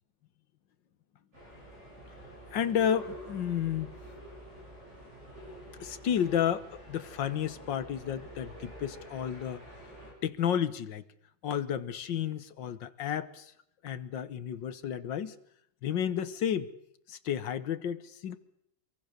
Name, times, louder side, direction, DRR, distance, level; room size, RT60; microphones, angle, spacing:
sound 1, 1.3-10.1, equal, 35° right, 8.5 m, -48 dB
voice 1, 2.5-3.9 5.8-9.6 10.2-11.0 11.4-13.5 13.8-15.4 15.8-16.7 17.1-18.4, left 9 dB, 85° left, 12 dB, 1.9 m, -31 dB
25.5 x 23.5 x 6.7 m, 0.73 s
omnidirectional pair, 1.9 m